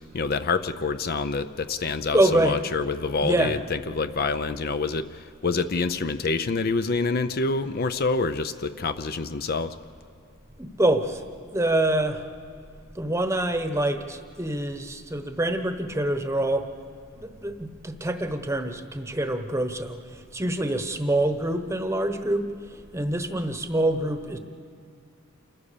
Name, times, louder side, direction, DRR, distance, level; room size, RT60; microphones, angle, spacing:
voice 1, 0.1-9.7, left 4 dB, 45° left, 10 dB, 0.6 m, -27 dB
voice 2, 2.1-2.6 3.2-3.6 10.6-11.2 11.5-12.3 12.9-16.7 17.1-24.4, right 1 dB, 15° right, 8 dB, 1.0 m, -26 dB
28.0 x 15.5 x 6.9 m, 2.3 s
head